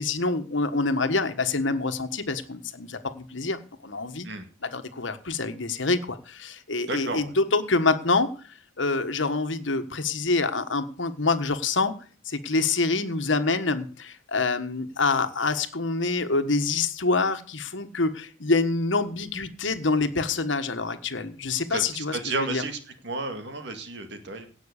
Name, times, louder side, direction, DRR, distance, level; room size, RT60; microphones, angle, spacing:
voice 1, 0.0-4.3 4.6-8.3 8.8-11.9 12.2-22.6, left 3 dB, 75° left, 9 dB, 1.5 m, -26 dB
voice 2, 6.9-7.3 21.7-22.8 23.0-24.5, right 2 dB, 60° right, 7 dB, 2.1 m, -32 dB
17.5 x 6.3 x 6.6 m, 0.40 s
head